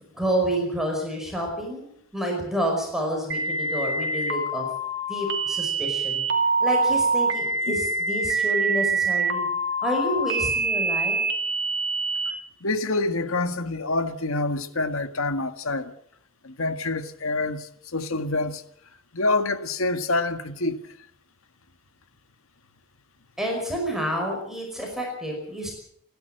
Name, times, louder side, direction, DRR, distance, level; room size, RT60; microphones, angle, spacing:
voice 1, 0.1-4.7 5.1-6.2 6.6-9.5 9.8-11.2 23.4-25.7, equal, ahead, 5.4 m, -29 dB
sound 1, 3.3-12.3, right 3 dB, 55° right, 2.3 m, -25 dB
voice 2, 12.6-15.9 16.4-18.6 19.1-20.8, left 2 dB, 90° left, 1.8 m, -26 dB
29.5 x 11.5 x 7.8 m
head